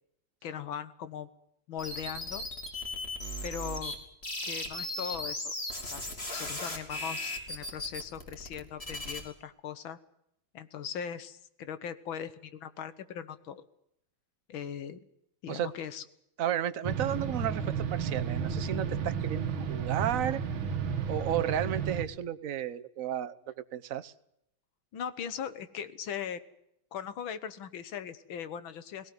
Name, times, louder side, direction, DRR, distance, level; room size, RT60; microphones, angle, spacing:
voice 1, 0.4-1.3 1.7-2.4 3.4-3.9 4.4-5.5 5.8-6.0 6.3-10.0 10.5-13.7 14.5-15.0 15.4-16.0 24.9-26.4 26.9-29.1, left 8 dB, 85° left, 13 dB, 2.0 m, -39 dB
sound 1, 1.8-4.0 4.2-9.2, left 1 dB, 30° left, 3.5 m, -37 dB
voice 2, 16.4-20.4 21.1-24.1, right 10 dB, 50° right, 12 dB, 1.2 m, -33 dB
sound 2, 16.8-22.1, right 7 dB, 90° right, 2.3 m, -32 dB
19.0 x 17.5 x 9.4 m, 0.79 s
omnidirectional pair, 2.1 m